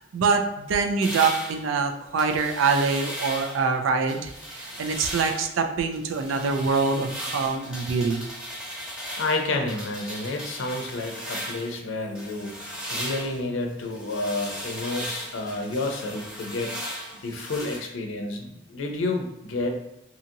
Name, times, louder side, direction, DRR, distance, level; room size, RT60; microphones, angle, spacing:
voice 1, 0.0-8.3, right 4 dB, 80° right, 6 dB, 0.4 m, -25 dB
sound 1, 1.0-3.7 4.1-5.5 5.9-11.8 12.1-17.8, equal, 5° right, 0.8 m, -37 dB
voice 2, 9.2-16.7 17.2-19.8, left 2 dB, 80° left, 3 dB, 0.5 m, -30 dB
2.7 x 2.7 x 2.5 m, 0.86 s
head